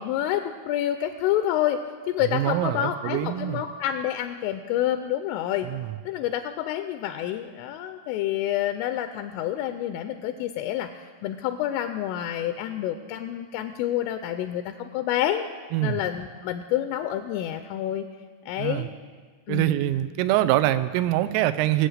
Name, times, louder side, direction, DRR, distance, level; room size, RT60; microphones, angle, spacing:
voice 1, 0.0-1.8 2.1-5.7 6.1-15.5 15.8-18.1 18.5-19.0 19.5-19.8, left 12 dB, 85° left, 8 dB, 3.0 m, -28 dB
voice 2, 2.3-3.6 5.6-5.9 15.7-16.0 18.6-18.9 19.5-21.9, right 14 dB, 85° right, 11 dB, 3.2 m, -24 dB
20.0 x 8.1 x 6.4 m, 1.5 s
omnidirectional pair, 6.0 m